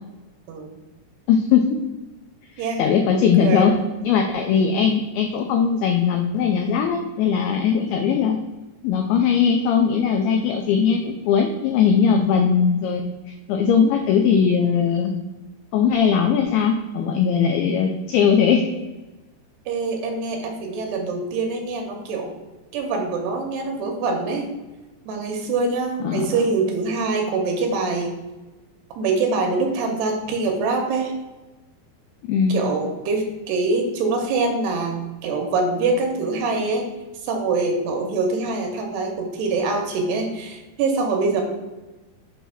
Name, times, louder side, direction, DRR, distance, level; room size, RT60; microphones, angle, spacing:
voice 1, 1.3-1.6 2.6-3.8 4.0-8.4 8.8-13.0 13.5-15.1 15.7-18.7 26.0-26.3 32.2-32.6, left 7 dB, 90° left, 3 dB, 2.2 m, -19 dB
voice 2, 3.1-3.8 19.7-22.3 22.7-24.5 25.1-28.1 29.0-31.1 32.5-36.8 37.2-41.4, right 3 dB, 80° right, 2 dB, 2.7 m, -24 dB
7.1 x 2.8 x 5.5 m, 1.1 s
omnidirectional pair, 5.0 m